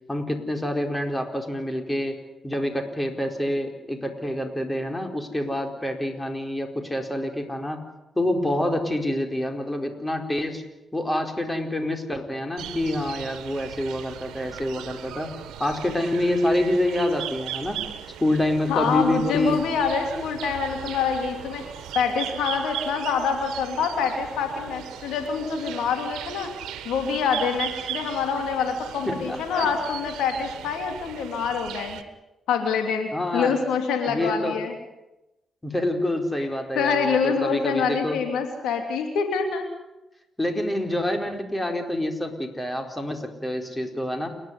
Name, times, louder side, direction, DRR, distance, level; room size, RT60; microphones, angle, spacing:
voice 1, 0.1-2.2 2.4-7.8 8.1-10.6 10.9-15.3 15.6-17.8 18.2-19.6 29.1-29.7 33.1-33.6 34.1-34.6 35.6-38.2 40.4-44.3, left 1 dB, 15° left, 5 dB, 4.5 m, -27 dB
sound 1, 12.6-32.0, right 11 dB, 85° right, 1.5 m, -38 dB
voice 2, 18.7-21.6 21.9-26.5 26.8-32.0 32.5-34.7 36.7-39.7, left 6 dB, 85° left, 5 dB, 3.0 m, -26 dB
29.5 x 11.0 x 9.9 m, 0.95 s
supercardioid pair, 55°, 0 cm